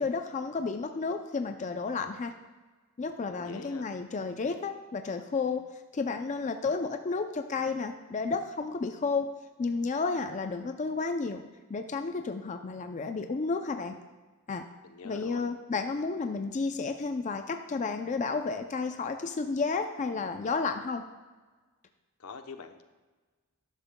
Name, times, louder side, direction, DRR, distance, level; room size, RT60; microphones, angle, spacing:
voice 1, 0.0-2.3 3.0-5.6 5.9-9.3 9.6-11.4 11.7-14.0 14.5-14.7 15.0-21.0, left 4 dB, 35° left, 6 dB, 0.4 m, -32 dB
voice 2, 3.3-3.9 14.8-15.5 22.2-22.8, left 4 dB, 80° left, 7 dB, 0.8 m, -44 dB
12.5 x 10.5 x 2.2 m, 1.3 s
head